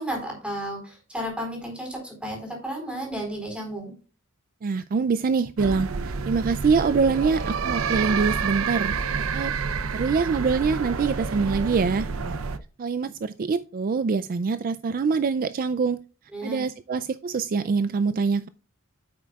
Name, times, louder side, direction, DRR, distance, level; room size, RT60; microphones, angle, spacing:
voice 1, 0.0-3.9 16.3-16.6, right 1 dB, 5° right, 4.2 m, -33 dB
voice 2, 4.6-9.0 9.3-12.4 12.8-16.0 16.4-18.5, right 5 dB, 40° right, 0.4 m, -25 dB
sound 1, 5.6-12.6, right 5 dB, 80° right, 0.7 m, -28 dB
9.5 x 8.3 x 2.4 m
head